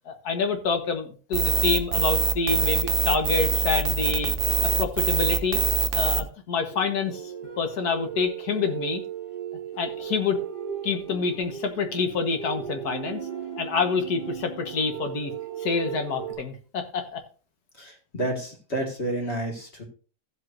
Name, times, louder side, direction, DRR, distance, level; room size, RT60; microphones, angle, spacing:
voice 1, 0.1-4.3 4.6-5.6 5.9-7.3 7.6-9.0 9.8-10.4 10.8-13.2 13.6-15.3 15.6-17.2, left 5 dB, 70° left, 6 dB, 1.8 m, -27 dB
sound 1, 1.3-6.2, right 5 dB, 45° right, 0.8 m, -23 dB
sound 2, 6.7-16.3, right 9 dB, 90° left, 5.6 m, -36 dB
voice 2, 17.8-19.8, right 1 dB, 40° left, 3 dB, 2.2 m, -30 dB
15.0 x 7.7 x 2.5 m, 0.38 s
omnidirectional pair, 1.7 m